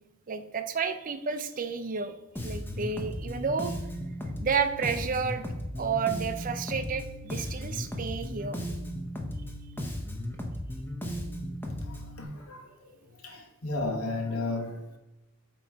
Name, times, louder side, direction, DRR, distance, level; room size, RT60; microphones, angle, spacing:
voice 1, 0.3-2.1 2.4-3.8 4.4-5.5 5.8-8.6, right 5 dB, 40° right, 10 dB, 0.4 m, -31 dB
Bass guitar, 2.4-12.2, equal, 10° left, 0.7 m, -36 dB
voice 2, 11.9-12.6 13.2-14.7, left 2 dB, 80° left, 2 dB, 1.2 m, -33 dB
7.8 x 3.1 x 4.5 m, 0.98 s
head